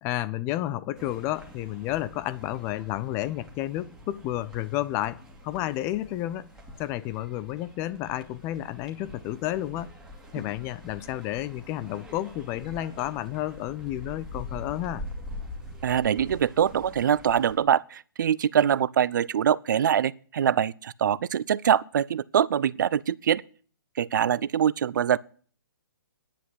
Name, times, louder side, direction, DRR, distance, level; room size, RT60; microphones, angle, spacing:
voice 1, 0.0-6.5 6.8-9.9 10.3-15.0, left 14 dB, 25° left, 0.5 m, -31 dB
sound 1, 0.9-17.6, left 1 dB, 5° right, 2.2 m, -44 dB
voice 2, 15.8-23.4 24.0-25.2, right 9 dB, 60° right, 0.5 m, -24 dB
10.0 x 8.3 x 7.5 m
hypercardioid pair, 140°, 12 cm